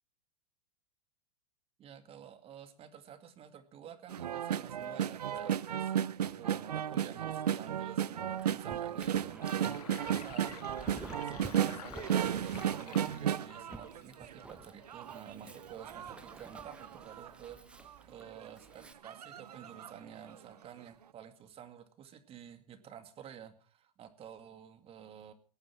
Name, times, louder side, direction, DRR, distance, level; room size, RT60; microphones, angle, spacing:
voice 1, 1.8-6.0 6.4-25.3, right 9 dB, 30° right, 9 dB, 2.2 m, -51 dB
sound 1, 4.1-14.4 14.9-17.3 17.9-18.0 18.2-18.5 19.0-20.0 20.3-20.4, right 9 dB, 90° right, 0.7 m, -34 dB
Dog, 8.4-18.9, right 2 dB, 5° right, 1.1 m, -52 dB
Sink (filling or washing), 9.4-14.3, left 12 dB, 75° left, 0.8 m, -51 dB
18.5 x 9.2 x 6.0 m, 0.40 s
hypercardioid pair, 115°, 20 cm